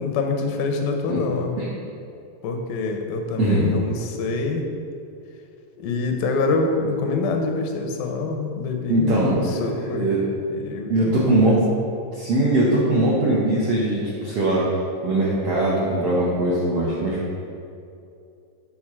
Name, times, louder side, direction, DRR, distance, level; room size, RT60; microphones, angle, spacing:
voice 1, 0.0-1.6 2.4-4.6 5.8-10.1 10.5-11.6, left 3 dB, 85° left, 3 dB, 2.5 m, -26 dB
voice 2, 3.4-3.7 8.9-10.2 10.9-11.7 12.1-14.7 15.0-17.2, right 1 dB, 75° right, -6 dB, 1.3 m, -21 dB
7.7 x 3.8 x 6.0 m, 2.5 s
omnidirectional pair, 3.9 m